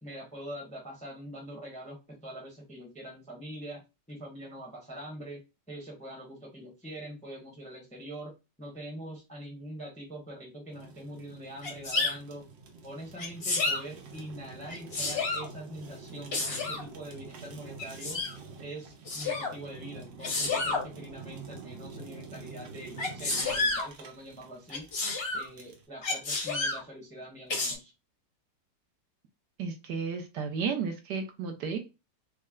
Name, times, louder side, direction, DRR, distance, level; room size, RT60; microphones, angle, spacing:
voice 1, 0.0-5.4 5.7-8.3 8.6-12.4 12.8-18.2 18.6-24.9 25.3-27.9, right 1 dB, 5° left, 0 dB, 0.7 m, -44 dB
Fire, 10.7-25.9, right 4 dB, 90° right, 1.6 m, -47 dB
Sneeze, 11.6-12.1 13.2-13.8 14.7-15.5 16.3-16.8 17.8-18.3 19.1-19.5 20.2-20.8 23.0-23.9 24.7-25.5 26.0-26.8 27.5-27.7, left 3 dB, 45° left, 0.9 m, -30 dB
voice 2, 29.6-31.8, right 5 dB, 70° right, 5 dB, 1.2 m, -33 dB
4.2 x 2.1 x 3.6 m, 0.27 s
omnidirectional pair, 1.9 m